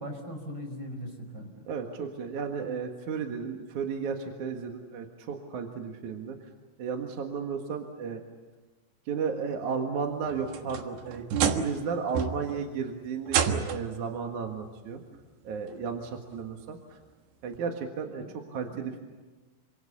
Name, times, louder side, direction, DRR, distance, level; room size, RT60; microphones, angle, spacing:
voice 1, 0.0-1.6 18.2-18.8, equal, 25° right, 3 dB, 5.6 m, -40 dB
voice 2, 1.7-6.5 6.8-8.2 9.1-15.0 15.4-17.0 17.4-19.0, right 6 dB, 55° right, 3 dB, 2.6 m, -33 dB
sound 1, 10.3-11.8 12.2-12.6 13.3-14.0 15.1-15.2 15.9-16.0 17.6-17.7, right 7 dB, 75° right, 3.6 m, -29 dB
28.0 x 26.0 x 7.1 m, 1.3 s
omnidirectional pair, 5.0 m